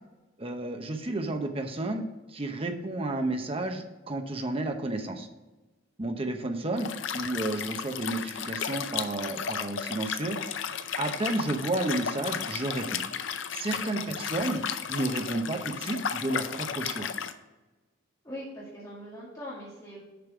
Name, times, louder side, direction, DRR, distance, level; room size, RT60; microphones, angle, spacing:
voice 1, 0.4-2.0 2.3-5.3 6.0-10.5 11.0-13.0 13.5-14.6 14.9-17.1, right 2 dB, 30° right, 5 dB, 0.8 m, -31 dB
Liquid, 6.8-17.3, left 7 dB, 70° left, 0.6 m, -34 dB
voice 2, 13.7-14.1 18.2-20.0, equal, 15° left, -8 dB, 2.2 m, -42 dB
6.9 x 5.3 x 6.2 m, 1.2 s
head